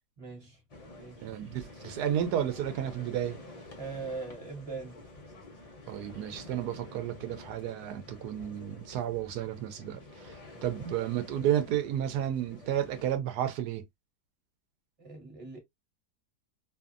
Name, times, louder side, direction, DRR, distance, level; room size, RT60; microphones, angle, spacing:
voice 1, 0.2-0.6 0.9-1.3 3.8-5.0 10.7-10.8 15.0-15.6, right 4 dB, 25° right, 0.9 m, -41 dB
sound 1, 0.7-13.2, left 2 dB, 50° left, 0.4 m, -49 dB
voice 2, 1.2-3.4 5.9-10.4 10.6-13.8, right 10 dB, 75° right, 1.1 m, -32 dB
2.6 x 2.6 x 2.4 m
omnidirectional pair, 1.8 m